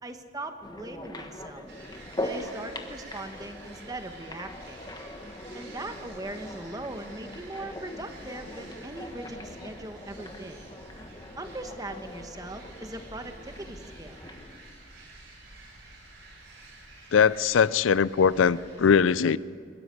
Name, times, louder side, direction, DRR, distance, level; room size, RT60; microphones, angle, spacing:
voice 1, 0.0-1.7 2.2-4.8 5.5-10.6 11.4-14.2, right 2 dB, 20° right, 7 dB, 1.1 m, -40 dB
sound 1, 0.6-14.6, left 1 dB, 20° left, 1.3 m, -41 dB
sound 2, 1.7-18.8, right 2 dB, 65° right, 5.5 m, -50 dB
voice 2, 17.1-19.4, left 6 dB, 75° left, 19 dB, 0.4 m, -21 dB
23.0 x 13.0 x 9.6 m, 2.3 s
head